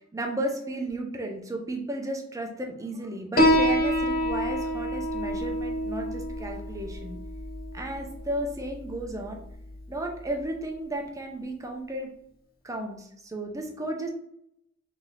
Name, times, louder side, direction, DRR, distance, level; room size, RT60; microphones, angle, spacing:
voice 1, 0.1-7.2 7.7-9.4 9.9-12.1 12.6-14.1, right 1 dB, 15° right, 2 dB, 0.5 m, -34 dB
Piano, 3.4-10.4, equal, 50° left, 0.7 m, -28 dB
3.2 x 2.8 x 4.0 m, 0.76 s
head